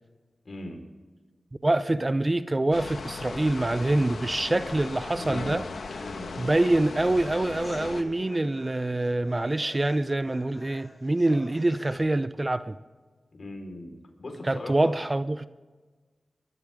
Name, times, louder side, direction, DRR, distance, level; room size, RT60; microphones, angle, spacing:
voice 1, 0.4-0.8 5.1-5.6 5.9-6.6 13.3-13.9 14.2-14.9, left 2 dB, 60° left, 4.6 m, -39 dB
voice 2, 1.6-5.7 6.4-12.8 14.5-15.5, right 2 dB, 30° right, 0.6 m, -25 dB
sound 1, 2.7-8.0, left 4 dB, 75° left, 1.3 m, -37 dB
sound 2, 4.0-12.0, left 1 dB, 35° left, 4.8 m, -48 dB
23.0 x 13.5 x 3.7 m
cardioid pair, 45°, 0 cm